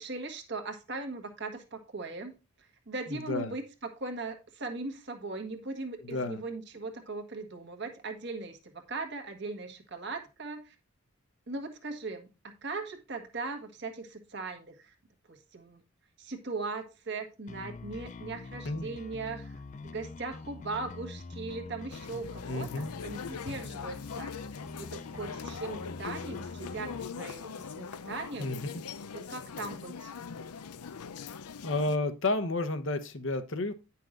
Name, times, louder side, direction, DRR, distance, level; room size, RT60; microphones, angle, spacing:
voice 1, 0.0-2.3 2.9-10.7 11.5-12.3 12.6-14.9 15.3-15.8 16.2-19.5 19.8-24.3 24.8-28.6 29.1-30.1, right 3 dB, 50° right, 5 dB, 1.5 m, -39 dB
voice 2, 3.1-3.5 6.0-6.4 18.6-18.9 22.5-22.9 28.4-28.8 31.6-33.7, left 2 dB, 55° left, 8 dB, 1.0 m, -31 dB
sound 1, 17.5-27.1, left 3 dB, 35° left, 0.4 m, -44 dB
sound 2, 21.9-32.0, left 6 dB, 90° left, 0.6 m, -42 dB
10.0 x 5.8 x 3.8 m, 0.28 s
head